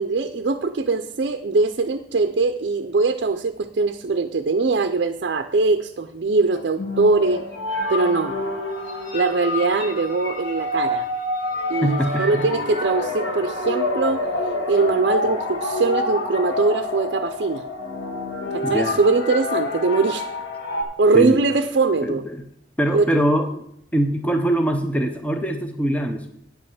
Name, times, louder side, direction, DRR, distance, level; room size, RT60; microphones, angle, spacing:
voice 1, 0.0-7.4 7.9-8.4 9.1-11.1 11.7-14.3 14.6-17.6 18.5-20.3 21.0-22.2 22.9-23.1, right 3 dB, 65° right, 8 dB, 0.5 m, -21 dB
sound 1, 6.5-20.8, left 2 dB, 85° left, 1.9 m, -27 dB
voice 2, 11.8-12.5 18.6-19.0 21.1-21.4 22.0-22.4 22.8-23.6 23.9-26.3, right 1 dB, 5° left, 5 dB, 0.6 m, -22 dB
9.0 x 5.4 x 7.0 m, 0.72 s
head